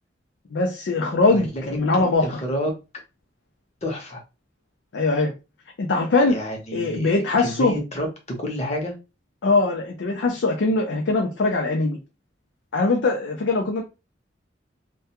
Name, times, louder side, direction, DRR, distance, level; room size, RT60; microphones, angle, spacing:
voice 1, 0.5-2.4 4.9-5.3 5.8-6.4 6.7-7.8 9.4-12.0 12.7-13.8, left 3 dB, 75° left, 0.5 m, -21 dB
voice 2, 1.3-2.7 3.8-4.2 6.3-7.1 7.4-8.9, equal, 35° left, 0.7 m, -29 dB
2.2 x 2.2 x 2.8 m
head